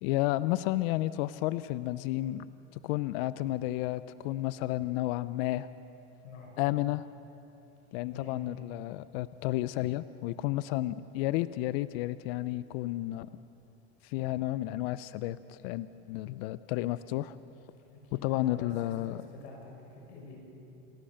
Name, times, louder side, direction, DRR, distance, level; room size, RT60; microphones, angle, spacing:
voice 1, 0.0-2.5 2.8-5.7 6.6-7.1 7.9-13.3 14.0-17.4 18.1-19.2, left 16 dB, 65° left, 16 dB, 0.6 m, -32 dB
voice 2, 8.0-8.4 18.0-20.4, left 3 dB, 85° left, 0 dB, 6.3 m, -47 dB
28.0 x 14.5 x 6.5 m, 2.9 s
supercardioid pair, 125°, 32 cm